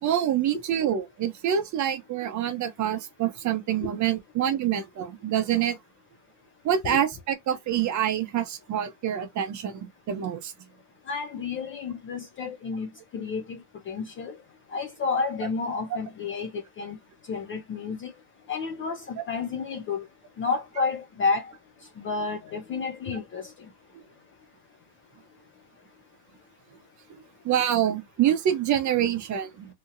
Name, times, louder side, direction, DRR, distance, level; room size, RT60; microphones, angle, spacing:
voice 1, 0.0-5.8 6.6-10.5 20.8-20.9 27.4-29.7, right 10 dB, 35° right, 0.8 m, -26 dB
voice 2, 11.1-14.4 14.7-16.5 16.8-17.0 17.3-18.1 18.5-20.0 20.4-21.5 22.0-23.5, left 4 dB, 30° left, 0.4 m, -31 dB
2.8 x 2.7 x 2.5 m
supercardioid pair, 120°, 49 cm